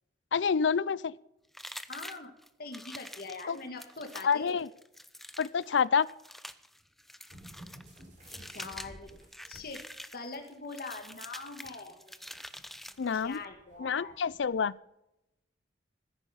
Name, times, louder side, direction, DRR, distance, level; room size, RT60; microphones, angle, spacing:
voice 1, 0.3-1.1 3.5-3.6 4.2-4.7 5.4-6.1 13.0-13.4 13.8-14.8, left 6 dB, 75° left, 21 dB, 0.5 m, -28 dB
sound 1, 1.5-13.5, equal, ahead, 0.5 m, -47 dB
voice 2, 1.9-2.3 2.6-4.6 8.5-9.1 9.5-9.8 10.1-11.9 13.1-14.1, left 3 dB, 55° left, 5 dB, 1.6 m, -42 dB
sound 2, 7.3-10.0 10.3-10.5 10.9-14.5, right 1 dB, 45° right, 4.5 m, -54 dB
14.0 x 10.0 x 5.6 m, 0.87 s
head